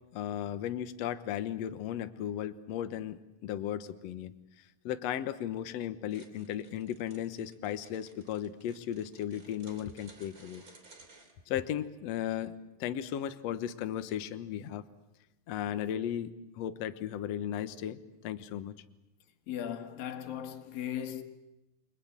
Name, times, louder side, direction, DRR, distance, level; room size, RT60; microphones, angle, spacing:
voice 1, 0.1-4.3 4.9-10.6 11.5-12.5 12.8-14.8 15.5-18.0 18.2-18.8, left 10 dB, 65° left, 1.8 m, -35 dB
sound 1, 6.0-11.3, right 3 dB, 25° right, 2.8 m, -57 dB
voice 2, 19.5-21.2, left 10 dB, 80° left, 3.4 m, -37 dB
29.0 x 23.5 x 7.4 m
omnidirectional pair, 4.1 m